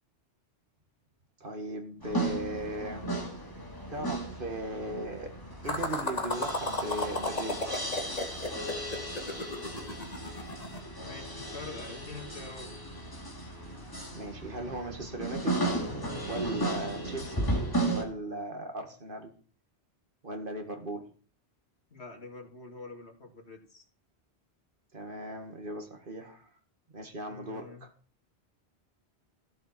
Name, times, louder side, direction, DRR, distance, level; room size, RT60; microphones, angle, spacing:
voice 1, 1.4-3.1 3.9-5.4 5.6-7.9 14.1-15.6 16.2-17.5 17.9-19.3 20.2-21.1 24.9-26.5 26.9-27.9, right 1 dB, 50° right, 5 dB, 2.1 m, -38 dB
sound 1, 2.0-18.0, right 1 dB, 20° left, 2.4 m, -35 dB
sound 2, 5.6-10.8, left 2 dB, 35° left, 1.7 m, -34 dB
voice 2, 10.9-12.7 21.9-23.9 27.3-27.9, left 3 dB, 75° left, 2 dB, 2.8 m, -45 dB
14.0 x 7.6 x 6.0 m, 0.39 s
omnidirectional pair, 1.1 m